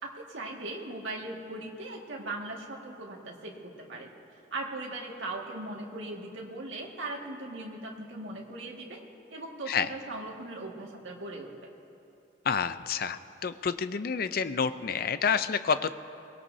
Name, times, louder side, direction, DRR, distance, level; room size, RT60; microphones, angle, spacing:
voice 1, 0.0-4.1 4.5-9.0 9.3-11.5, right 2 dB, 85° right, -1 dB, 1.9 m, -39 dB
voice 2, 12.5-15.9, left 6 dB, 50° left, 12 dB, 0.5 m, -29 dB
23.5 x 19.0 x 2.7 m, 2.6 s
head